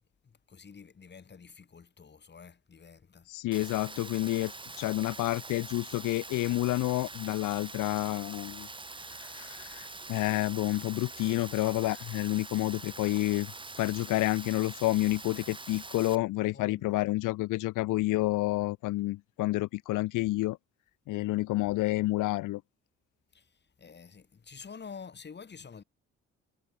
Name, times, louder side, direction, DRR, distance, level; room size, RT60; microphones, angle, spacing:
voice 1, 0.5-3.3 16.5-17.0 23.3-23.4 23.8-25.8, left 6 dB, 35° left, 2.6 m, -48 dB
voice 2, 3.3-8.7 9.2-13.5 13.8-20.6 21.1-22.6, left 18 dB, 90° left, 0.9 m, -29 dB
Rain, 3.5-16.2, right 3 dB, 15° right, 2.3 m, -44 dB
cardioid pair, 90°, 30 cm